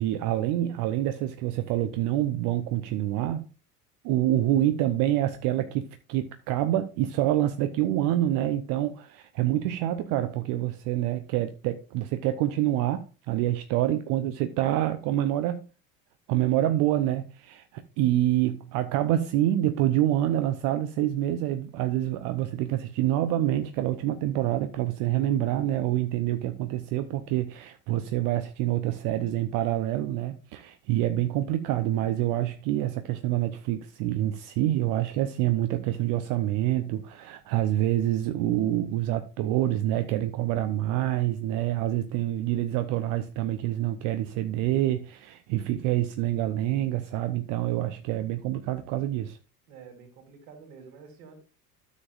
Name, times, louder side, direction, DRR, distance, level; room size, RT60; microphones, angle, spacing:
voice 1, 0.0-3.5 4.0-15.7 16.3-49.4, right 13 dB, 40° right, 0.7 m, -27 dB
voice 2, 49.7-51.4, right 5 dB, 55° right, 3.4 m, -48 dB
13.0 x 7.3 x 2.5 m
figure-of-eight pair, 70°, 48 cm